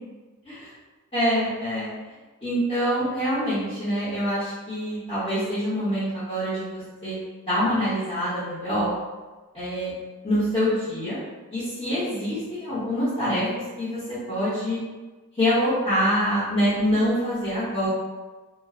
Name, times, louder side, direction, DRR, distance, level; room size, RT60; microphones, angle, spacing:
voice 1, 1.1-1.9 2.4-7.2 7.5-8.9 9.5-9.9 10.2-11.2 11.5-13.5 13.8-14.8 15.4-17.9, equal, 25° left, -14 dB, 0.8 m, -25 dB
2.1 x 2.0 x 3.5 m, 1.3 s
head